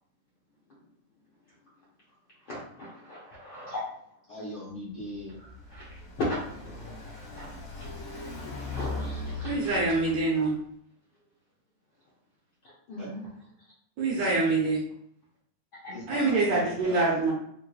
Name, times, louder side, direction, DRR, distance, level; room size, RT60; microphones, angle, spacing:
voice 1, 2.5-3.8 5.7-5.8 6.2-6.9 7.3-7.5 8.7-9.8 12.9-13.3 15.8-15.9, left 1 dB, 70° left, -8 dB, 1.2 m, -36 dB
voice 2, 4.3-5.4 13.0-13.1 15.9-17.0, left 1 dB, 30° left, -8 dB, 0.7 m, -40 dB
Car passing by, 5.0-10.5, left 3 dB, 55° left, 1.9 m, -39 dB
voice 3, 9.4-10.5 14.0-14.8 16.1-17.3, right 3 dB, 70° right, -5 dB, 1.8 m, -25 dB
4.8 x 3.0 x 2.3 m, 0.68 s
omnidirectional pair, 3.6 m